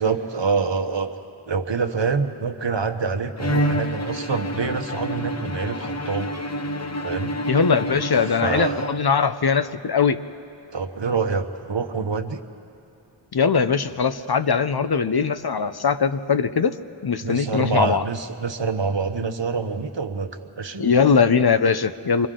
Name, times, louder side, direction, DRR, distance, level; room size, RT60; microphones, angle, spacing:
voice 1, 0.0-1.2 1.5-6.3 7.0-7.3 8.4-9.0 10.7-12.4 17.2-20.9, right 5 dB, 65° right, 7 dB, 1.0 m, -26 dB
Bowed string instrument, 3.4-9.4, equal, 35° left, 1.0 m, -28 dB
voice 2, 7.5-10.2 13.3-16.8 17.0-18.1 20.8-22.3, left 5 dB, 55° left, 11 dB, 0.7 m, -20 dB
29.5 x 23.5 x 3.8 m, 2.7 s
wide cardioid pair, 45°, 46 cm